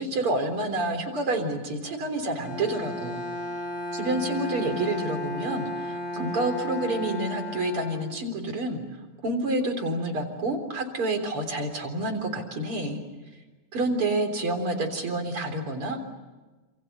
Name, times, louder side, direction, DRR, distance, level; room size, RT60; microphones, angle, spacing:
voice 1, 0.0-3.2 3.9-8.8 9.2-13.0 13.7-16.0, right 2 dB, 45° right, 5 dB, 4.4 m, -28 dB
Bowed string instrument, 2.3-8.5, left 1 dB, 70° left, 7.2 m, -34 dB
29.0 x 27.5 x 6.8 m, 1.2 s
omnidirectional pair, 3.4 m